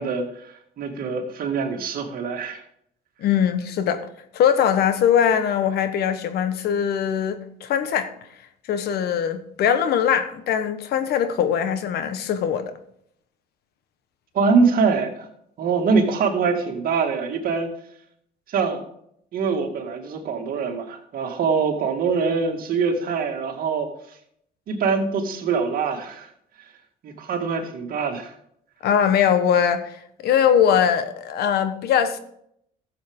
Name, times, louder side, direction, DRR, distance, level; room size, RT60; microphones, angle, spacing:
voice 1, 0.0-2.6 14.3-15.3 15.6-17.7 18.5-18.8 19.3-23.9 24.7-26.3 27.0-28.3, right 5 dB, 60° right, 2.1 m, -24 dB
voice 2, 3.2-4.1 4.3-8.1 8.7-12.7 28.8-32.2, left 8 dB, 70° left, 1.2 m, -21 dB
14.0 x 7.5 x 3.7 m
cardioid pair, 110°, 17 cm